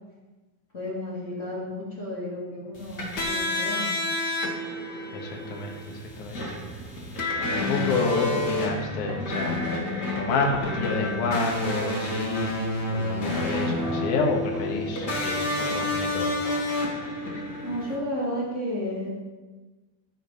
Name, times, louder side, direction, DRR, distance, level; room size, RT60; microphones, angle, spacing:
voice 1, 0.7-4.0 17.6-19.1, left 1 dB, 25° left, -6 dB, 1.9 m, -32 dB
sound 1, 2.7-18.0, left 1 dB, 75° left, 0.9 m, -29 dB
voice 2, 5.1-6.6 7.4-9.7 10.2-10.5 10.7-12.6 12.9-16.4, left 4 dB, 55° left, 0 dB, 2.5 m, -29 dB
sound 2, 6.5-17.8, right 2 dB, 60° right, 3.2 m, -49 dB
Snare drum, 8.0-8.8 9.1-9.9 10.2-12.0 12.4-14.0 14.5-16.1 16.5-16.7, right 2 dB, 85° right, 3.6 m, -46 dB
15.0 x 5.1 x 5.7 m, 1.2 s
omnidirectional pair, 5.0 m